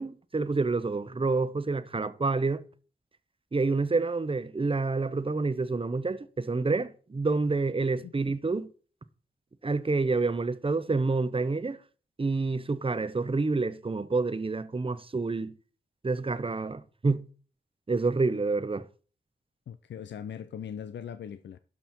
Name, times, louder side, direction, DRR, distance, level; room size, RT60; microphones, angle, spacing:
voice 1, 0.0-2.6 3.5-8.7 9.6-11.8 12.2-15.5 16.0-17.2 17.9-18.8, right 3 dB, 30° right, 0.9 m, -28 dB
voice 2, 19.7-21.6, left 8 dB, 85° left, 0.5 m, -40 dB
12.0 x 5.5 x 4.4 m
cardioid pair, 55°, 18 cm